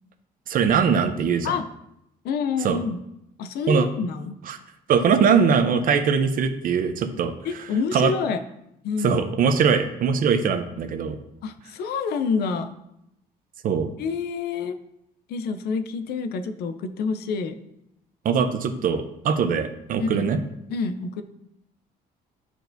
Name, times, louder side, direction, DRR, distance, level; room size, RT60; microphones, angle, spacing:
voice 1, 0.5-1.5 2.6-2.8 3.7-3.9 4.5-4.6 4.9-7.3 7.9-8.1 9.0-11.2 13.6-13.9 18.2-20.4, right 6 dB, 55° right, 9 dB, 0.7 m, -21 dB
voice 2, 2.2-3.0 3.4-4.4 7.4-8.4 8.8-9.2 11.4-12.7 14.0-14.8 15.3-17.6 20.0-20.3 20.7-21.2, left 5 dB, 70° left, 9 dB, 0.6 m, -27 dB
9.6 x 4.6 x 2.6 m, 0.81 s
cardioid pair, 110°, 17 cm